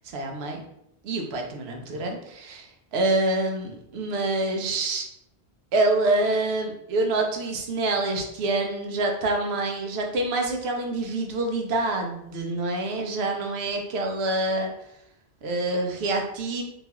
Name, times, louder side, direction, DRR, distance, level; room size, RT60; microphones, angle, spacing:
voice 1, 0.1-0.6 1.0-2.7 2.9-5.1 5.7-14.7 15.4-16.6, right 2 dB, 70° right, 2 dB, 0.8 m, -26 dB
2.9 x 2.3 x 2.8 m, 0.78 s
omnidirectional pair, 1.1 m